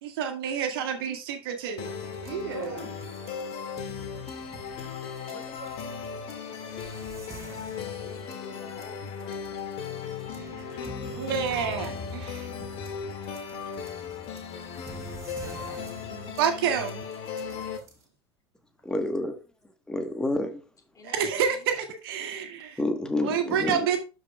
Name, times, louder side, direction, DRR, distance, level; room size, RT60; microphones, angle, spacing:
voice 1, 0.0-2.8 11.1-12.5 16.4-17.0 21.0-22.8 23.2-24.0, right 7 dB, 65° right, 1.7 m, -29 dB
sound 1, 1.8-17.8, left 6 dB, 45° left, 2.1 m, -37 dB
sound 2, 1.9-18.0, right 2 dB, 20° right, 2.1 m, -47 dB
voice 2, 2.5-3.0 5.3-6.3 6.9-7.8 11.2-12.0 15.3-16.4 23.4-23.7, left 1 dB, 90° left, 2.7 m, -46 dB
voice 3, 7.7-9.7 20.9-21.7, left 2 dB, 25° left, 2.8 m, -49 dB
voice 4, 18.8-19.4 19.9-20.6 22.8-23.8, left 1 dB, 5° left, 1.4 m, -28 dB
12.5 x 5.1 x 2.4 m
figure-of-eight pair, 80°, 13 cm